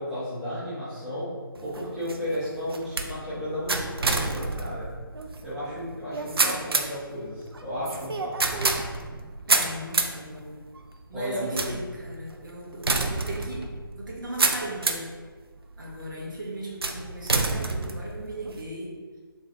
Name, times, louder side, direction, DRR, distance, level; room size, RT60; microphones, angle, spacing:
voice 1, 0.0-1.3 1.6-4.9 5.4-8.6 11.1-11.7, left 1 dB, ahead, -15 dB, 0.8 m, -33 dB
sound 1, 1.6-15.2 15.7-16.2 16.8-18.6, right 3 dB, 80° right, 0.4 m, -29 dB
voice 2, 9.5-10.6 11.1-13.7 14.0-15.1 15.8-19.0, right 1 dB, 55° right, -4 dB, 1.0 m, -37 dB
3.8 x 3.1 x 2.7 m, 1.5 s
figure-of-eight pair, 155°, 12 cm